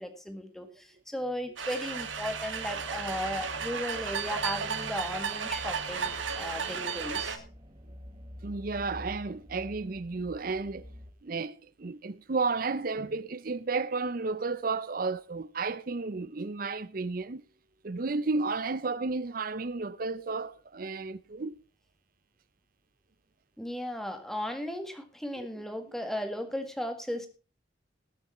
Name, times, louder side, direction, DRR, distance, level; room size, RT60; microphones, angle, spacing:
voice 1, 0.0-7.4 23.6-27.3, left 1 dB, ahead, 1.7 m, -36 dB
sound 1, 1.6-11.1, equal, 25° right, 1.6 m, -48 dB
sound 2, 1.6-7.4, right 6 dB, 80° right, 1.7 m, -34 dB
voice 2, 8.4-10.9 11.2-17.4 17.8-21.6 25.4-25.6, right 4 dB, 45° right, 0.5 m, -32 dB
20.0 x 6.9 x 4.3 m
head